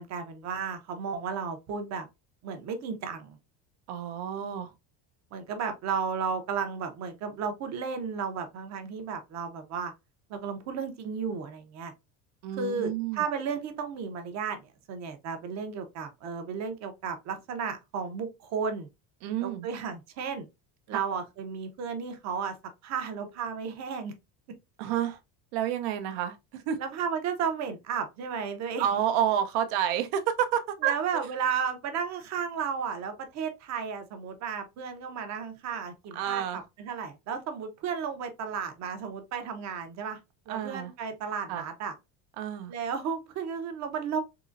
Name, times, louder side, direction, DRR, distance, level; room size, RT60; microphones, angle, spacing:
voice 1, 0.0-2.1 2.4-3.4 5.3-9.9 10.3-11.9 12.5-18.9 19.4-20.5 20.9-22.5 22.8-24.1 26.8-28.9 30.8-36.4 36.8-40.2 40.5-41.9 42.7-44.2, right 6 dB, 40° right, 0.6 m, -33 dB
voice 2, 3.9-4.7 12.4-13.2 19.2-19.7 24.8-25.2 25.5-26.8 28.8-30.9 36.1-36.6 40.5-40.9 41.5-41.7 42.4-42.7, right 10 dB, 75° right, 0.7 m, -29 dB
3.8 x 2.9 x 2.5 m
cardioid pair, 175°, 45 cm